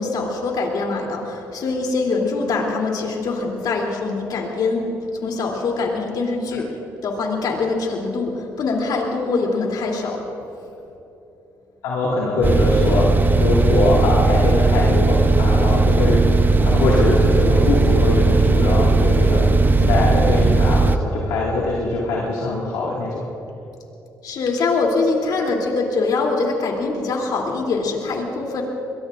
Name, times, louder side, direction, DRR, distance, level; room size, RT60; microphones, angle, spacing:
voice 1, 0.0-4.9 5.2-6.7 7.0-10.2 24.2-28.6, left 3 dB, 65° left, 0 dB, 3.1 m, -23 dB
voice 2, 11.8-16.2 16.6-23.3, left 2 dB, 85° left, -5 dB, 2.1 m, -22 dB
sound 1, 12.4-21.0, right 3 dB, 25° right, 0.8 m, -17 dB
22.5 x 22.5 x 2.6 m, 2.9 s
supercardioid pair, 60°, 7 cm